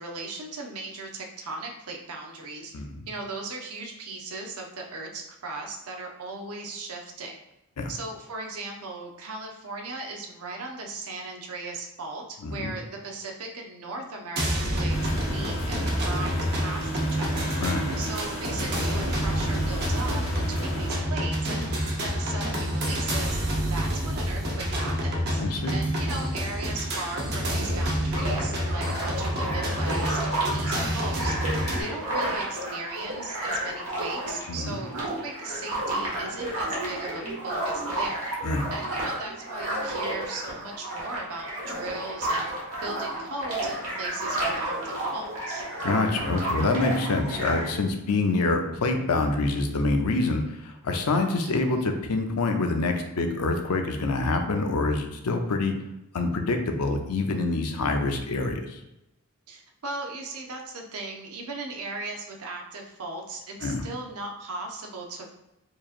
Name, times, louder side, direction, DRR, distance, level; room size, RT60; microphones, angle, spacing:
voice 1, 0.0-2.7 3.1-7.4 7.9-17.5 18.0-21.7 22.0-23.4 23.7-25.4 25.7-31.3 31.8-38.3 38.7-42.4 42.8-45.6 51.4-51.5 59.5-65.3, right 3 dB, 80° right, 2 dB, 0.7 m, -37 dB
voice 2, 2.7-3.1 7.8-7.9 12.4-12.7 17.6-17.9 20.4-20.5 25.4-25.8 34.5-34.8 38.4-38.7 45.8-55.7 56.1-58.8 63.6-63.8, left 3 dB, 90° left, 5 dB, 0.6 m, -26 dB
sound 1, 14.4-31.8, equal, 45° right, 0.7 m, -28 dB
sound 2, 14.9-20.9, equal, 40° left, 1.2 m, -36 dB
sound 3, 28.1-47.8, right 1 dB, 65° right, 1.5 m, -31 dB
4.6 x 2.9 x 2.5 m, 0.90 s
head